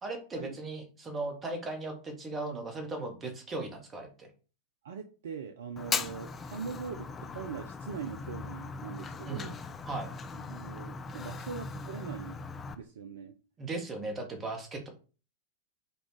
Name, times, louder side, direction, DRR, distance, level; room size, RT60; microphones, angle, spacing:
voice 1, 0.0-4.3 9.3-9.5 9.8-10.1 13.6-14.9, right 2 dB, 20° right, 4 dB, 0.9 m, -37 dB
voice 2, 4.8-9.6 10.4-12.4 12.8-13.4, right 6 dB, 60° right, 8 dB, 0.3 m, -41 dB
Fire, 5.8-12.7, left 4 dB, 20° left, 0.4 m, -39 dB
3.9 x 2.3 x 3.0 m, 0.37 s
figure-of-eight pair, 90°, 0 cm